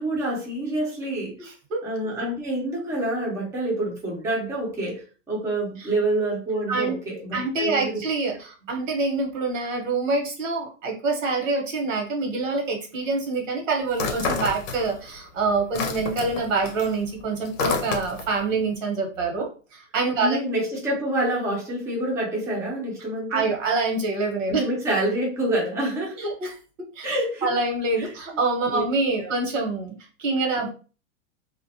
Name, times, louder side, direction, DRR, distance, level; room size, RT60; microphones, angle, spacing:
voice 1, 0.0-1.3 1.8-8.0 20.2-23.4 24.5-26.2 27.0-27.5 28.0-28.1 28.7-28.8 29.2-29.3 30.6-30.7, right 1 dB, 10° right, -3 dB, 0.5 m, -27 dB
voice 2, 1.4-1.8 5.8-5.9 6.7-7.0 7.3-20.4 23.3-24.6 26.2-26.5 26.9-27.1 27.4-29.9 30.2-30.7, right 3 dB, 85° right, 1 dB, 1.2 m, -26 dB
sound 1, 13.9-15.2 15.5-18.4, left 4 dB, 85° left, 0.8 m, -29 dB
2.4 x 2.2 x 2.7 m, 0.36 s
supercardioid pair, 145°, 37 cm